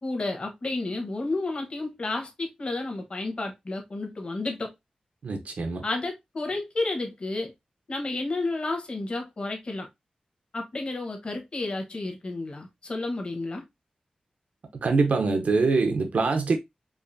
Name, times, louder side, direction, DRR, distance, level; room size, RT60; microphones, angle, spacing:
voice 1, 0.0-4.7 5.8-7.5 7.9-9.9 10.5-13.6, left 2 dB, 40° left, 1.0 m, -31 dB
voice 2, 5.2-5.8 14.8-16.6, right 4 dB, 70° right, 0.6 m, -24 dB
4.6 x 2.5 x 2.6 m
wide cardioid pair, 130°, 3 cm